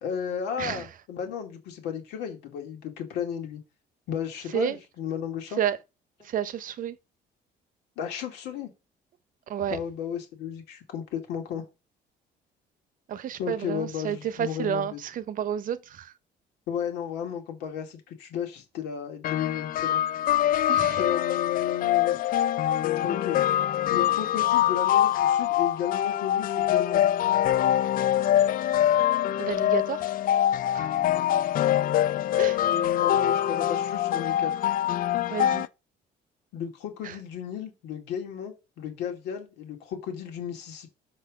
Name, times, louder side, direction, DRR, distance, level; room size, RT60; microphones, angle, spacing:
voice 1, 0.0-3.6 4.1-5.6 8.0-8.7 9.7-11.6 13.4-15.0 16.7-20.0 21.0-22.2 23.0-23.4 23.9-27.1 32.6-34.5 36.5-40.9, left 8 dB, 85° left, 2.2 m, -34 dB
voice 2, 6.2-7.0 9.5-9.8 13.1-16.1 20.7-21.0 29.4-30.1 30.7-30.9 32.4-32.6 35.3-35.7 37.0-37.2, right 9 dB, 55° right, 0.8 m, -30 dB
sound 1, 19.2-35.7, left 11 dB, 55° left, 0.4 m, -24 dB
6.0 x 4.4 x 6.4 m
cardioid pair, 110°, 17 cm